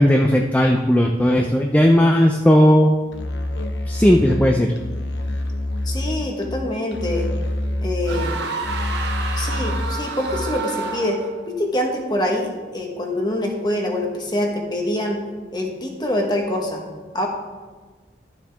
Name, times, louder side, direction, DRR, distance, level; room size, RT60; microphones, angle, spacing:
voice 1, 0.0-2.9 3.9-4.8, equal, 10° left, 2 dB, 0.4 m, -16 dB
Musical instrument, 3.1-10.7, left 1 dB, 90° left, 0.9 m, -27 dB
voice 2, 5.9-7.3 7.8-8.5 9.4-11.2 11.5-15.2 15.5-16.8 17.1-17.3, left 1 dB, 25° left, 1 dB, 1.4 m, -25 dB
sound 1, 8.0-11.4, right 4 dB, 80° right, 1.0 m, -29 dB
12.0 x 7.2 x 3.5 m, 1.3 s
head